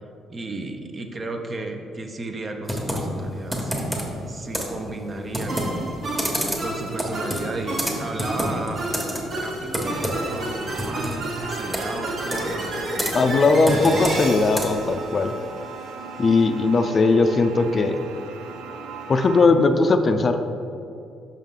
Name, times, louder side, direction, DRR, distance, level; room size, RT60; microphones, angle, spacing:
voice 1, 0.3-5.9 6.6-9.0 9.3-13.6, right 2 dB, 35° right, 4 dB, 0.7 m, -34 dB
Computer keyboard, 2.6-14.9, equal, 10° right, 1.3 m, -30 dB
sound 1, 5.5-15.9, right 1 dB, 60° right, 1.3 m, -31 dB
sound 2, 9.8-19.5, right 5 dB, 80° right, 0.4 m, -38 dB
voice 2, 13.1-15.4 16.2-18.0 19.1-20.4, left 3 dB, 40° left, 7 dB, 0.4 m, -19 dB
5.5 x 5.4 x 3.8 m, 2.6 s
supercardioid pair, 75°, 0 cm